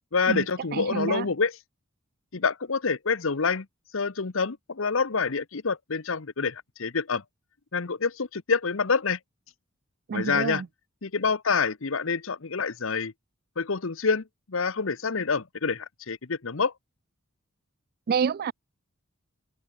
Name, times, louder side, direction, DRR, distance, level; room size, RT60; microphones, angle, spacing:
voice 1, 0.1-1.6 2.3-3.7 3.9-7.2 7.7-9.2 10.1-10.6 11.0-13.1 13.6-16.7, left 5 dB, 65° left, 0.9 m, -27 dB
voice 2, 0.7-1.3 10.1-10.7 18.1-18.5, right 6 dB, 45° right, 0.3 m, -28 dB
head